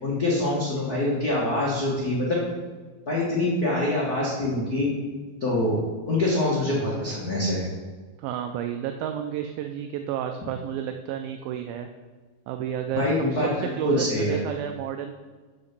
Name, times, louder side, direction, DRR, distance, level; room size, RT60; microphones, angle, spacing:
voice 1, 0.0-2.4 3.1-4.9 5.4-7.7 13.0-14.4, left 1 dB, 80° left, -6 dB, 0.8 m, -25 dB
voice 2, 8.2-11.9 12.5-15.1, right 9 dB, 80° right, 6 dB, 2.2 m, -31 dB
6.7 x 5.9 x 7.3 m, 1.4 s
omnidirectional pair, 4.4 m